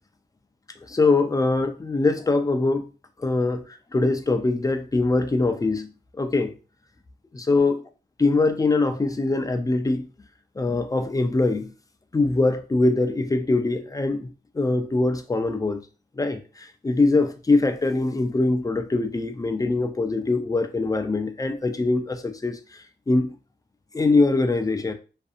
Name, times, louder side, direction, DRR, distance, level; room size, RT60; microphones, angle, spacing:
voice 1, 0.9-2.9 3.2-3.6 3.9-5.9 6.2-6.5 7.3-7.8 8.2-10.1 10.6-11.7 12.1-15.8 16.2-22.6 23.1-23.3 23.9-24.9, left 3 dB, 20° left, 0.3 m, -22 dB
2.5 x 2.5 x 2.4 m
wide cardioid pair, 100°, 18 cm